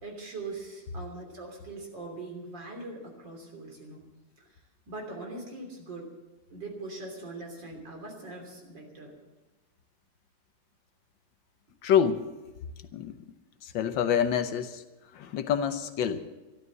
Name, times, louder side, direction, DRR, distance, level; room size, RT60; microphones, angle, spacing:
voice 1, 0.0-4.0 4.9-6.1 6.5-9.1, right 2 dB, 65° right, 1 dB, 3.9 m, -41 dB
voice 2, 11.8-12.3 12.9-13.2 13.6-14.8 15.1-16.2, left 8 dB, 75° left, 10 dB, 1.6 m, -26 dB
13.0 x 12.5 x 7.8 m, 1.1 s
omnidirectional pair, 2.1 m